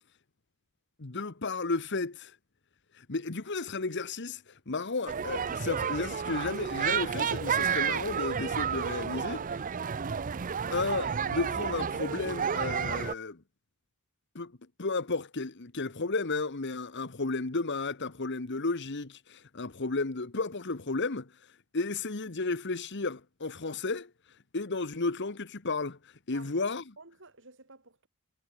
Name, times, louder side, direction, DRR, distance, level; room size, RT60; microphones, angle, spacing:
voice 1, 1.0-2.4 2.9-9.9 10.7-13.4 14.3-26.9, left 3 dB, 55° left, 1.3 m, -33 dB
sound 1, 5.1-13.1, right 7 dB, 40° right, 0.5 m, -31 dB
voice 2, 26.3-28.1, right 3 dB, 60° right, 6.6 m, -54 dB
head